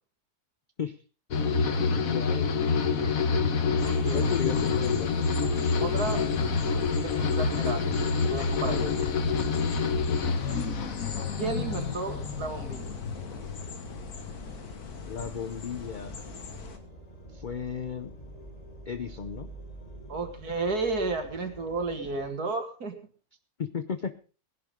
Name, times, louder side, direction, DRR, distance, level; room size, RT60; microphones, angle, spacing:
sound 1, 1.3-14.6 14.9-15.6, left 5 dB, 65° left, 1.6 m, -27 dB
voice 1, 2.1-2.5 4.1-5.1 8.7-9.0 15.0-16.2 17.3-18.1 18.9-19.5 23.6-24.2, left 7 dB, 45° left, 11 dB, 0.7 m, -34 dB
sound 2, 3.8-16.8, left 4 dB, 80° left, 2.1 m, -43 dB
voice 2, 3.8-4.3 5.8-6.2 7.0-7.9 8.3-8.8 11.4-12.9 20.1-23.0, right 3 dB, 90° right, 5 dB, 2.8 m, -32 dB
sound 3, 5.4-22.3, right 2 dB, 25° left, 3.6 m, -47 dB
19.5 x 11.0 x 3.7 m, 0.35 s
omnidirectional pair, 1.6 m